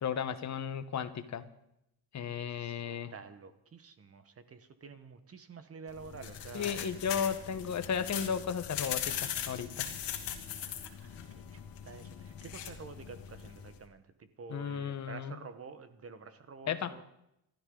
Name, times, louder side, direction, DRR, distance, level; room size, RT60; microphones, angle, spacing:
voice 1, 0.0-1.5 2.1-3.1 6.5-9.9 14.5-15.4 16.7-17.0, left 7 dB, 40° left, 12 dB, 1.2 m, -34 dB
voice 2, 2.3-6.8 10.6-17.0, right 5 dB, 35° right, 11 dB, 1.3 m, -49 dB
sound 1, 5.9-13.8, left 9 dB, 70° left, 2.4 m, -40 dB
27.5 x 13.0 x 3.9 m, 0.81 s
cardioid pair, 135°, 42 cm